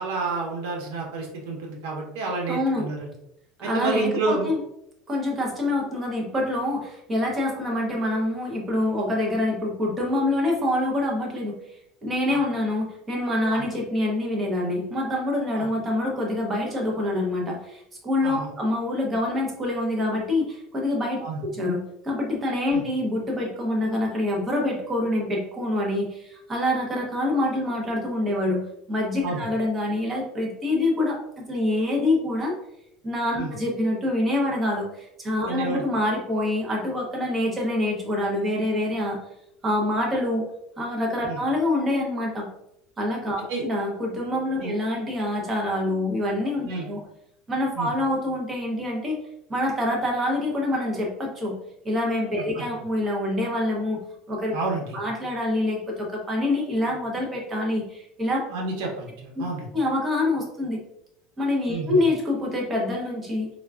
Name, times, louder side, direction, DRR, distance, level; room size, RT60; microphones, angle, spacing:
voice 1, 0.0-3.1 3.6-4.5 12.3-12.4 13.5-13.6 15.5-15.7 18.2-18.5 21.2-21.4 22.7-22.8 29.2-29.4 33.4-33.5 35.4-35.8 41.3-41.4 43.5-43.6 44.6-44.7 46.6-46.9 47.8-47.9 52.5-52.6 54.5-55.0 58.5-59.7 61.7-62.0, right 3 dB, 80° right, 0 dB, 0.9 m, -29 dB
voice 2, 2.5-2.9 3.6-4.6 5.1-11.6 12.0-32.5 33.0-39.2 39.6-40.4 40.8-42.5 43.0-47.0 47.5-49.2 49.5-51.6 51.8-54.0 54.3-54.5 54.9-58.4 59.7-60.8 61.4-63.5, left 1 dB, 20° right, -1 dB, 0.8 m, -26 dB
3.6 x 2.3 x 2.3 m, 0.79 s
cardioid pair, 150°, 0 cm